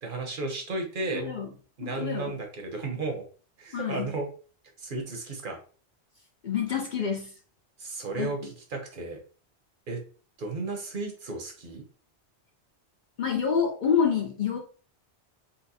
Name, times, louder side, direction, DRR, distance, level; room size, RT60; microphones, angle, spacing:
voice 1, 0.0-1.2 1.8-3.2 3.6-4.3 4.8-5.6 7.8-9.2 9.9-10.0 10.4-11.8, right 3 dB, 55° right, 3 dB, 0.8 m, -34 dB
voice 2, 1.1-1.5 1.8-2.3 3.7-4.1 6.4-7.3 8.2-8.5 13.2-14.6, left 7 dB, 55° left, 1 dB, 0.6 m, -28 dB
4.0 x 2.1 x 2.6 m, 0.39 s
omnidirectional pair, 1.1 m